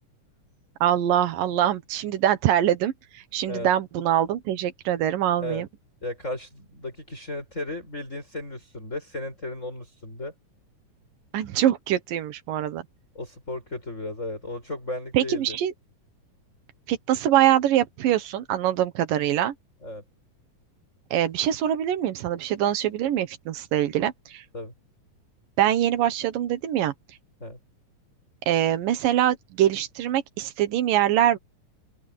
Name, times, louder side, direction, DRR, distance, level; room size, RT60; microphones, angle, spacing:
voice 1, 0.8-5.7 11.3-12.8 15.1-15.7 16.9-19.5 21.1-24.4 25.6-26.9 28.5-31.4, right 11 dB, 85° right, 3.1 m, -23 dB
voice 2, 6.0-10.3 13.1-15.6 19.8-20.0 24.5-24.7 27.4-27.6, left 2 dB, 20° left, 8.1 m, -35 dB
open air
omnidirectional pair, 3.8 m